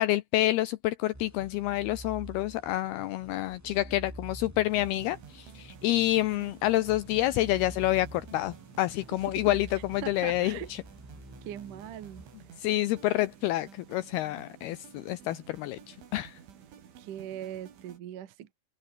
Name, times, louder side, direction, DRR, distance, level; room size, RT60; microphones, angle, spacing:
voice 1, 0.0-10.8 12.6-16.4, left 15 dB, 90° left, 2.3 m, -28 dB
sound 1, 1.1-13.0, right 1 dB, 5° right, 2.5 m, -48 dB
sound 2, 4.7-18.0, right 8 dB, 85° right, 5.9 m, -52 dB
voice 2, 9.1-9.6 10.0-10.7 11.5-12.3 17.0-18.5, right 11 dB, 55° right, 2.6 m, -40 dB
omnidirectional pair, 5.3 m